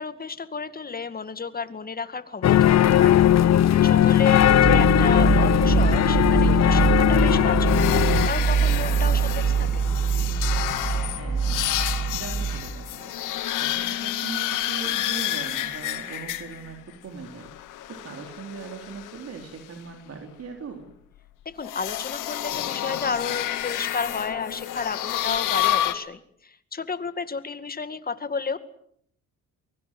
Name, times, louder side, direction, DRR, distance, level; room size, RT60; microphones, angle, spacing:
voice 1, 0.0-3.2 3.8-9.9 21.5-28.6, left 5 dB, 30° left, 11 dB, 2.1 m, -32 dB
sound 1, 2.4-8.3, left 11 dB, 60° left, 1.0 m, -18 dB
sound 2, 4.4-12.7, right 6 dB, 25° right, 1.8 m, -24 dB
sound 3, 7.6-16.8 17.2-19.4 21.6-25.9, left 13 dB, 90° left, 2.1 m, -30 dB
voice 2, 11.0-11.7 12.1-13.1 13.6-17.5 17.9-20.9, right 5 dB, 55° right, 3 dB, 4.1 m, -40 dB
23.5 x 22.5 x 7.8 m, 0.67 s
cardioid pair, 90°, 30 cm